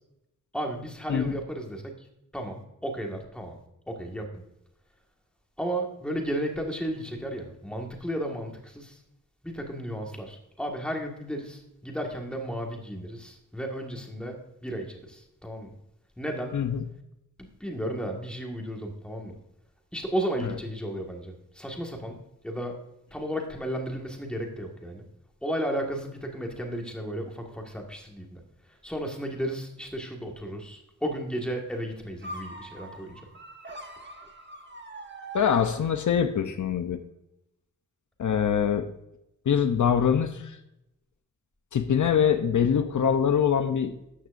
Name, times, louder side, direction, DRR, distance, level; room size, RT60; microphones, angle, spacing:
voice 1, 0.5-1.8 2.3-3.6 3.9-4.4 5.6-9.0 9.4-15.7 16.2-16.6 17.4-19.3 19.9-22.2 22.4-22.7 23.1-25.0 25.4-28.4 28.8-33.2, right 1 dB, 5° left, 1 dB, 1.7 m, -34 dB
voice 2, 16.5-16.8 20.4-20.6 35.3-37.0 38.2-38.9 39.5-40.6 41.7-44.0, left 8 dB, 65° left, 8 dB, 0.7 m, -24 dB
sound 1, 32.2-36.4, right 1 dB, 35° right, 1.2 m, -43 dB
13.5 x 9.3 x 2.6 m, 0.85 s
wide cardioid pair, 170°, 32 cm